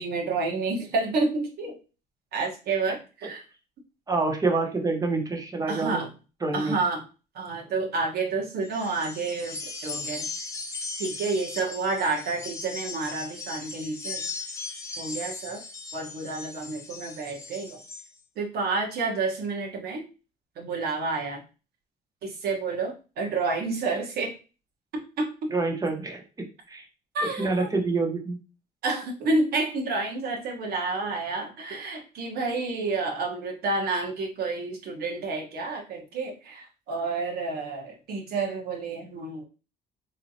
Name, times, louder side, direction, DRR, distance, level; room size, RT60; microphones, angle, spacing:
voice 1, 0.0-1.8 2.3-3.4 5.7-6.1 6.5-7.0 7.3-10.3 11.0-14.2 15.0-15.6 15.9-17.8 18.4-20.0 20.6-21.4 22.2-24.3 25.2-25.3 27.1-27.7 28.8-39.4, right 3 dB, 65° right, 0 dB, 1.3 m, -29 dB
voice 2, 4.1-6.0 6.4-6.7 25.5-26.2 26.7-26.8 27.2-28.4, right 3 dB, 20° right, 2 dB, 1.0 m, -27 dB
sound 1, 8.6-18.1, left 4 dB, 20° left, 0.8 m, -38 dB
3.6 x 3.2 x 2.8 m, 0.33 s
cardioid pair, 110°, 17 cm